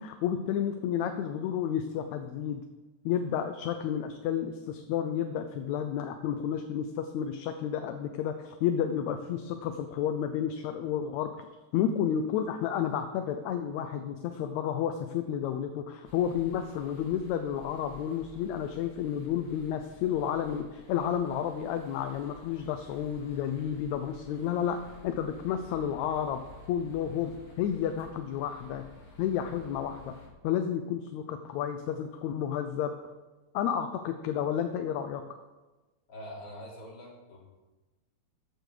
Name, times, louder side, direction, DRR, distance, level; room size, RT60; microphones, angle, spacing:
voice 1, 0.0-2.6 3.1-11.3 11.7-26.4 26.7-28.8 29.2-30.1 30.4-32.9 33.5-35.2, left 9 dB, 75° left, 7 dB, 2.0 m, -31 dB
sound 1, 16.0-30.3, left 2 dB, 30° left, 2.7 m, -52 dB
voice 2, 36.1-37.4, equal, 50° left, -5 dB, 4.5 m, -44 dB
14.0 x 9.1 x 4.9 m, 1.2 s
omnidirectional pair, 3.4 m